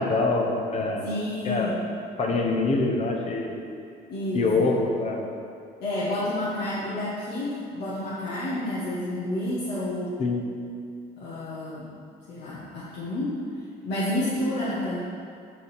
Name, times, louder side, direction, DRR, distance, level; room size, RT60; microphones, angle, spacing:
voice 1, 0.0-1.1 1.4-1.7 2.2-3.6 4.3-5.2 10.2-10.4, left 3 dB, 40° left, 1 dB, 0.9 m, -24 dB
voice 2, 1.0-1.8 4.1-4.7 5.8-10.1 11.2-11.9 12.3-13.3 13.8-15.0, left 1 dB, 80° left, -9 dB, 1.4 m, -30 dB
6.8 x 4.1 x 5.7 m, 2.4 s
cardioid pair, 110°, 17 cm